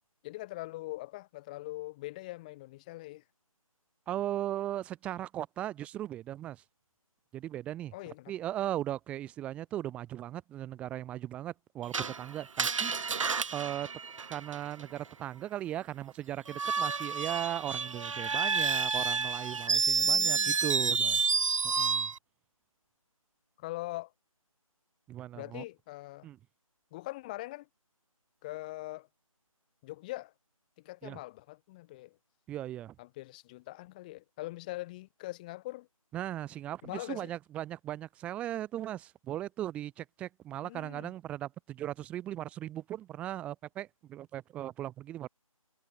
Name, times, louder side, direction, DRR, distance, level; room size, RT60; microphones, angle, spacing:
voice 1, 0.2-3.2 7.9-8.3 20.0-20.6 23.6-24.1 25.3-26.3 26.9-27.7 28.4-29.1 29.8-30.3 30.8-32.2 33.0-35.9 36.8-37.3 40.6-41.1, left 19 dB, 15° left, 2.1 m, -42 dB
voice 2, 4.1-6.6 7.3-12.9 13.5-13.9 14.3-21.2 21.6-22.1 25.1-25.6 26.2-26.4 31.0-31.2 32.5-33.0 36.1-45.3, right 12 dB, 5° right, 2.2 m, -38 dB
Screech, 11.9-14.8 16.5-22.2, right 5 dB, 60° right, 0.5 m, -30 dB
figure-of-eight pair, 165°, 18 cm